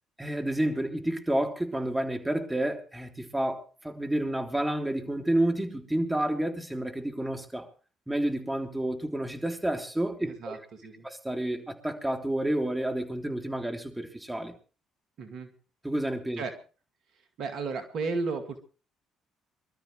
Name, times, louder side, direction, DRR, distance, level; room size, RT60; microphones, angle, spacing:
voice 1, 0.2-7.7 8.1-10.6 11.0-14.5 15.8-16.4, right 1 dB, 10° right, 3.4 m, -30 dB
voice 2, 10.2-11.1 15.2-15.5 16.4-16.6 17.4-18.6, right 4 dB, 60° right, 2.3 m, -34 dB
25.0 x 13.0 x 3.3 m
hypercardioid pair, 50°, 0 cm